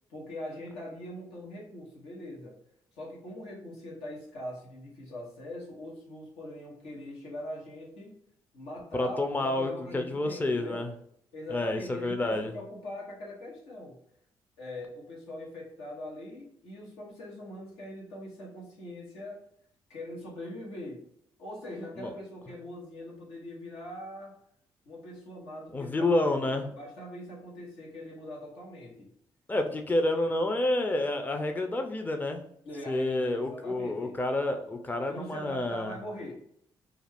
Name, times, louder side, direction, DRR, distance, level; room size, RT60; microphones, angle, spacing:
voice 1, 0.1-2.6 3.0-8.2 8.5-10.9 11.3-14.0 14.6-19.4 19.9-21.0 21.4-24.4 24.8-29.1 32.6-34.2 35.1-36.4, left 1 dB, 85° left, -3 dB, 1.0 m, -42 dB
voice 2, 8.9-10.9 11.5-12.5 22.0-22.1 25.7-26.7 29.5-32.4 32.9-36.0, left 2 dB, 20° left, 5 dB, 0.5 m, -29 dB
2.4 x 2.3 x 3.3 m, 0.69 s
supercardioid pair, 55°, 10 cm